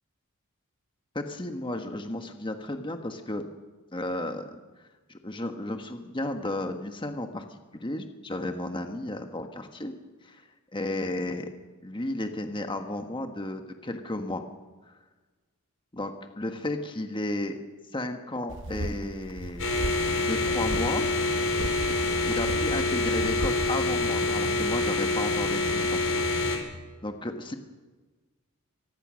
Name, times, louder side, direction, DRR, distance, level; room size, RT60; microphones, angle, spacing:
voice 1, 1.1-3.4 3.9-4.5 5.1-9.9 10.2-10.4 10.7-11.5 11.8-14.4 14.9-15.0 15.9-17.6 17.9-19.7 20.3-21.1 22.2-26.0 27.0-27.6, left 1 dB, 20° left, 5 dB, 1.4 m, -33 dB
sound 1, 18.5-20.2 20.5-20.9 21.4-23.7, right 1 dB, 60° right, 1.0 m, -36 dB
sound 2, 19.6-26.6, left 2 dB, 60° left, 4.3 m, -26 dB
24.0 x 19.5 x 6.4 m, 1.3 s
head